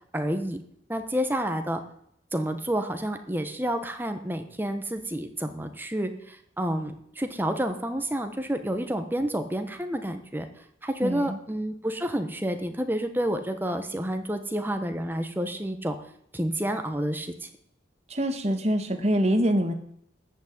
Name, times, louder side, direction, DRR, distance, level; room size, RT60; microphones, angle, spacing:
voice 1, 0.1-0.6 0.9-1.8 2.3-16.0 16.3-17.5, right 1 dB, 10° right, 7 dB, 1.2 m, -29 dB
voice 2, 11.0-11.4 18.1-19.7, equal, 35° right, 6 dB, 1.7 m, -25 dB
14.0 x 6.2 x 9.5 m, 0.70 s
head